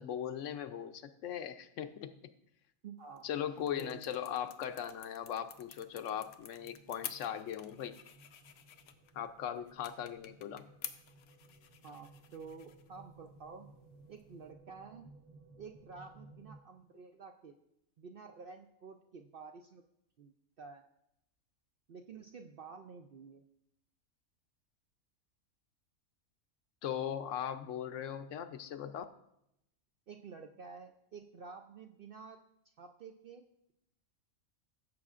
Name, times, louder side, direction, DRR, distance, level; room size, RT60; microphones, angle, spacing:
voice 1, 0.0-2.1 3.2-8.0 9.1-10.7 26.8-29.0, left 9 dB, 65° left, 10 dB, 0.9 m, -39 dB
voice 2, 2.8-3.3 3.7-4.0 11.8-13.7 14.1-15.1 15.6-17.6 18.0-19.8 20.2-20.8 21.9-23.4 30.1-32.4 32.8-33.7, right 5 dB, 70° right, 5 dB, 0.5 m, -50 dB
sound 1, 3.0-14.5, left 9 dB, 90° left, 1.2 m, -52 dB
sound 2, 5.2-16.6, right 2 dB, 45° right, 1.2 m, -60 dB
15.5 x 7.2 x 2.5 m, 0.79 s
omnidirectional pair, 1.5 m